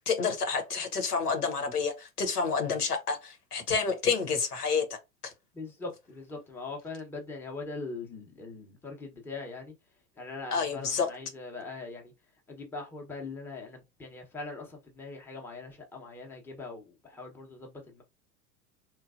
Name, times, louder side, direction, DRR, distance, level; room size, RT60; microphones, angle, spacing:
voice 1, 0.0-4.9 5.2-5.3 10.5-11.1, left 5 dB, 85° left, 0.9 m, -29 dB
voice 2, 5.5-9.7 10.2-12.1 12.5-18.0, left 3 dB, 5° left, 0.6 m, -41 dB
3.1 x 2.3 x 2.4 m
figure-of-eight pair, 90°, 45 cm